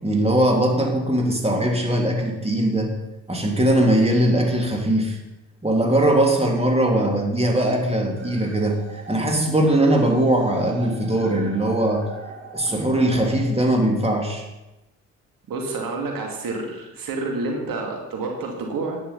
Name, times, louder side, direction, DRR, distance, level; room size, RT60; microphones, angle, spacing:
voice 1, 0.0-2.9 3.3-5.2 5.6-12.1 12.5-14.5, right 1 dB, 15° right, 2 dB, 2.9 m, -20 dB
sound 1, 8.2-14.2, right 3 dB, 35° right, 2.8 m, -41 dB
voice 2, 15.5-19.0, right 3 dB, 65° right, 1 dB, 2.6 m, -29 dB
10.0 x 9.7 x 5.6 m, 0.99 s
hypercardioid pair, 50°, 37 cm